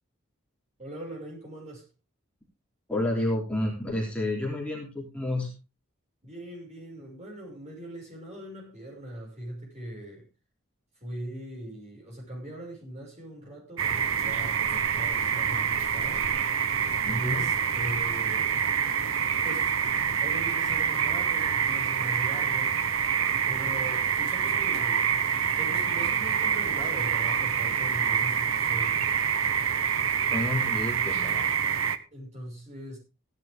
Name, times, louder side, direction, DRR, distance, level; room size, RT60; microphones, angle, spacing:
voice 1, 0.8-1.8 6.2-10.3 11.0-16.3 17.0-18.5 19.4-19.7 20.2-22.7 23.5-25.0 25.6-29.0 32.1-33.0, right 1 dB, 35° right, -2 dB, 6.1 m, -40 dB
voice 2, 2.9-5.5 17.0-17.5 30.3-31.5, left 1 dB, 5° left, -2 dB, 3.5 m, -30 dB
sound 1, 13.8-32.0, right 7 dB, 80° right, 1.1 m, -26 dB
16.5 x 11.0 x 3.7 m, 0.31 s
head